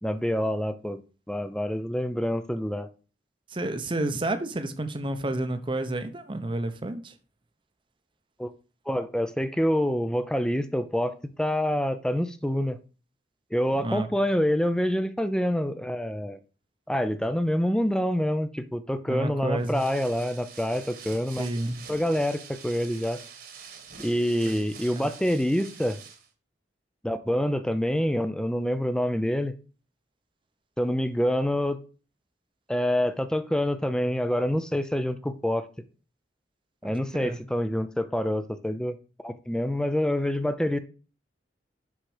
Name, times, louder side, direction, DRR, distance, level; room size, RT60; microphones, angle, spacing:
voice 1, 0.0-1.0 1.3-2.9 8.4-8.5 8.9-12.8 13.5-16.4 16.9-21.5 21.9-23.2 24.0-26.0 27.0-29.5 30.8-31.8 32.7-35.7 36.8-39.0 39.2-40.8, equal, 5° left, 0.6 m, -26 dB
voice 2, 3.5-7.2 13.7-14.1 19.1-19.8 21.4-21.8 24.4-24.6 25.0-25.1 36.8-37.4, right 1 dB, 30° right, 0.8 m, -30 dB
sound 1, 19.6-26.3, right 6 dB, 55° right, 1.6 m, -46 dB
6.3 x 5.8 x 4.9 m
head